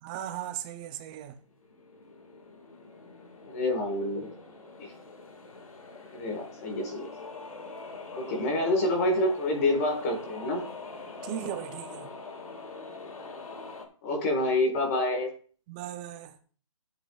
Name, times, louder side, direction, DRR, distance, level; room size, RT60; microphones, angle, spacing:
voice 1, 0.0-1.4 11.2-12.1 15.7-16.3, right 11 dB, 15° right, 0.5 m, -37 dB
sound 1, 1.4-13.9, left 3 dB, 90° left, 1.9 m, -44 dB
voice 2, 3.5-4.3 4.8-4.9 6.1-7.1 8.1-10.6 14.0-15.3, left 1 dB, 25° left, 1.6 m, -27 dB
12.5 x 7.8 x 2.4 m
hypercardioid pair, 160°, 17 cm